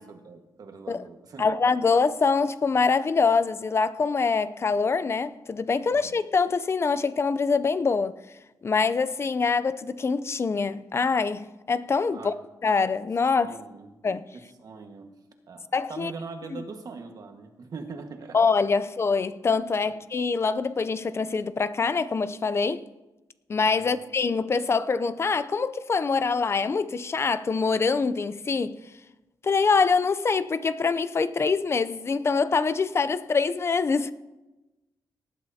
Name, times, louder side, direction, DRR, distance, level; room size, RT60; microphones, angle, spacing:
voice 1, 0.0-1.5 5.9-6.1 12.1-12.4 13.4-13.9 14.3-15.1 15.5-18.4 23.7-24.0, right 4 dB, 55° right, 1.5 m, -42 dB
voice 2, 1.4-8.1 8.6-12.3 12.6-13.5 14.0-14.2 15.7-16.1 18.3-22.8 23.5-28.8 29.4-34.1, left 4 dB, 35° left, 0.5 m, -24 dB
18.5 x 11.0 x 2.8 m
cardioid pair, 105°, 8 cm